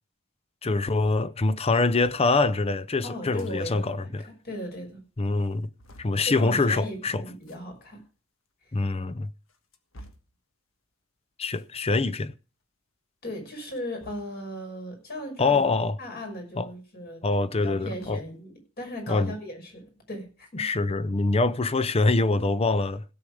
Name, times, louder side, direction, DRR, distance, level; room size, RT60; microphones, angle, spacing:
voice 1, 0.6-4.3 5.2-5.7 6.0-7.2 8.7-9.3 11.4-12.3 15.4-16.0 16.6-16.7 17.2-18.2 19.1-19.3 20.5-23.0, left 3 dB, 30° left, 0.6 m, -24 dB
sound 1, 2.0-2.3 3.2-3.6 3.9-4.0 4.2-4.3 4.9-5.0 5.4-6.2 7.4-7.6 8.5-8.6 9.2-10.4 11.5-11.8 13.5-14.5 15.5-15.7 16.1-16.2 17.4-18.4, equal, 70° left, 1.6 m, -52 dB
voice 2, 3.0-5.0 6.2-8.0 13.2-15.6 16.0-17.2 17.5-20.6, left 1 dB, 50° left, 6.0 m, -37 dB
16.5 x 7.8 x 4.9 m
head